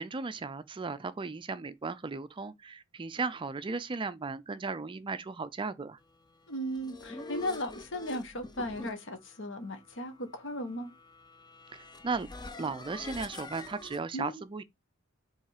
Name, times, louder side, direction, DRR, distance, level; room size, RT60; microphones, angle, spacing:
voice 1, 0.0-6.0 11.7-12.3 12.6-14.6, right 4 dB, 25° right, 0.4 m, -36 dB
voice 2, 6.5-10.9 14.1-14.4, equal, 60° left, 1.5 m, -36 dB
sound 1, 6.5-14.0, left 2 dB, 20° left, 0.7 m, -46 dB
5.5 x 3.6 x 4.9 m
head